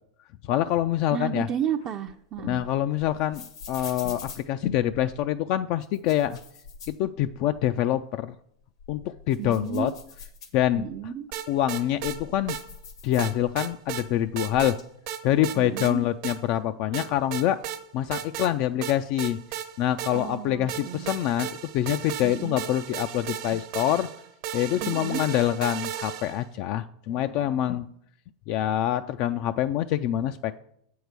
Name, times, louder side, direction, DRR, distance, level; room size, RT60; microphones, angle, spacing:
voice 1, 0.4-1.5 2.4-6.4 6.9-8.4 8.9-9.9 10.5-10.8 11.5-12.6 13.0-14.8 15.2-17.6 17.9-19.4 19.8-24.1 24.5-27.9 28.5-30.6, left 12 dB, 50° left, 9 dB, 0.3 m, -26 dB
voice 2, 1.1-2.6 9.4-9.9 10.7-11.3 15.6-16.0 20.1-21.1 22.2-22.6 24.8-25.2, right 9 dB, 35° right, 4 dB, 0.5 m, -32 dB
sound 1, 1.8-5.2 5.8-7.7 8.0-8.1 8.6-11.0 11.6-13.7 14.0-14.8, left 5 dB, 90° left, 1.8 m, -45 dB
sound 2, 11.3-12.2 12.5-12.6 13.2-14.1 14.4-14.8 15.1-15.9 16.2-16.4 16.9-17.8 18.1-18.5 18.8-20.4 20.7-26.5, right 11 dB, 60° right, 0.9 m, -35 dB
8.0 x 4.7 x 6.7 m, 0.71 s
hypercardioid pair, 115°, 3 cm